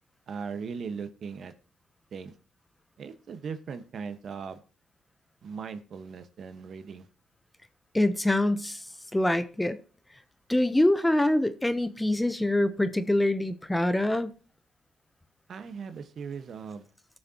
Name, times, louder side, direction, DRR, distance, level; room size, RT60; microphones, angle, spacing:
voice 1, 0.3-1.5 2.1-2.3 3.0-4.6 5.4-7.1 15.5-16.9, right 6 dB, 55° right, 10 dB, 1.3 m, -38 dB
voice 2, 7.9-8.8 9.1-9.8 10.5-14.3, left 1 dB, 10° left, 13 dB, 0.8 m, -25 dB
19.0 x 6.6 x 2.9 m, 0.39 s
cardioid pair, 90°, 0 cm